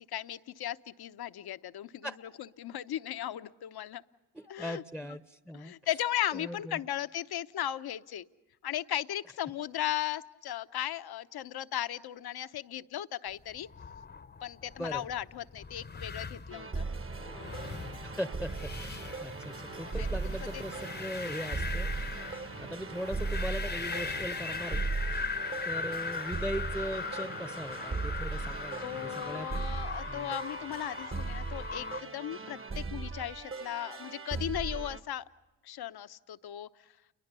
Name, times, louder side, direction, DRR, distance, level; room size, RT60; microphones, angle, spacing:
voice 1, 0.0-4.0 4.5-4.8 5.5-8.2 8.6-13.7 14.4-16.8 20.0-20.6 22.5-22.7 28.8-35.3 35.6-36.7, left 12 dB, 60° left, 13 dB, 0.9 m, -37 dB
voice 2, 4.3-5.7 6.3-6.8 14.8-15.0 18.0-21.9 22.3-24.8 25.7-29.5 30.0-30.4, equal, ahead, 11 dB, 0.9 m, -39 dB
sound 1, 13.5-32.0, left 5 dB, 25° left, 0.9 m, -40 dB
sound 2, 16.5-35.0, right 3 dB, 30° right, 1.2 m, -38 dB
29.5 x 22.5 x 6.8 m, 1.1 s
supercardioid pair, 60°, 42 cm